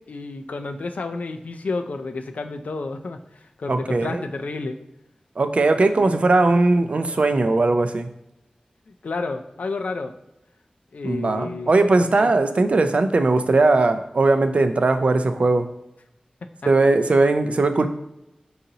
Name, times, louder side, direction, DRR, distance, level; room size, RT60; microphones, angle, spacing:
voice 1, 0.0-3.2 3.6-4.8 6.0-6.2 9.0-10.1 10.9-12.3, left 3 dB, 85° left, 7 dB, 0.3 m, -31 dB
voice 2, 3.7-4.2 5.4-8.1 11.0-15.7 16.7-17.9, right 3 dB, 60° right, 9 dB, 0.3 m, -19 dB
3.9 x 3.9 x 2.7 m, 0.90 s
wide cardioid pair, 80°, 2 cm